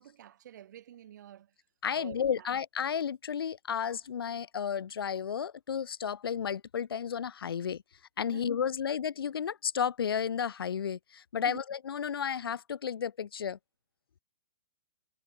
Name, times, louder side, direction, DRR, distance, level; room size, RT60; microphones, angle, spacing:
voice 1, 0.0-1.5 2.0-2.5 8.3-8.5 11.4-11.6, right 11 dB, 50° right, 3.6 m, -48 dB
voice 2, 1.8-7.8 8.2-13.6, left 7 dB, 85° left, 1.3 m, -32 dB
hypercardioid pair, 165°, 12 cm